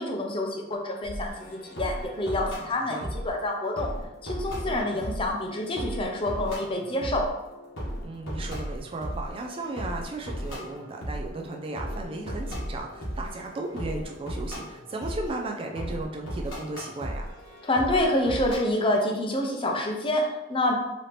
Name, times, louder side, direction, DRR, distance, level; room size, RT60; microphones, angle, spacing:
voice 1, 0.0-3.9 4.2-7.3 17.6-20.8, left 1 dB, 25° left, 1 dB, 0.6 m, -27 dB
sound 1, 1.0-18.6, equal, 75° left, 1.3 m, -36 dB
voice 2, 4.6-5.1 8.0-17.3, right 2 dB, 25° right, 1 dB, 0.4 m, -35 dB
4.1 x 2.8 x 3.2 m, 0.96 s
head